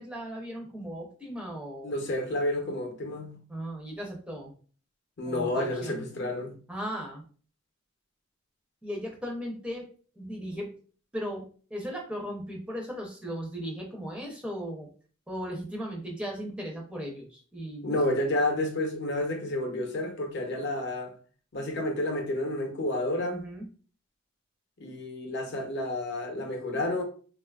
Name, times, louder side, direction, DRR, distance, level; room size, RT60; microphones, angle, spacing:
voice 1, 0.0-1.9 3.5-4.5 5.2-6.0 6.7-7.2 8.8-9.9 10.2-10.7 11.1-14.9 15.3-18.0 23.3-23.7, equal, 5° right, 0.5 m, -37 dB
voice 2, 1.8-3.4 5.2-6.6 17.8-21.1 21.5-23.4 24.8-27.0, left 1 dB, 55° left, 0.6 m, -30 dB
3.6 x 2.3 x 2.3 m
head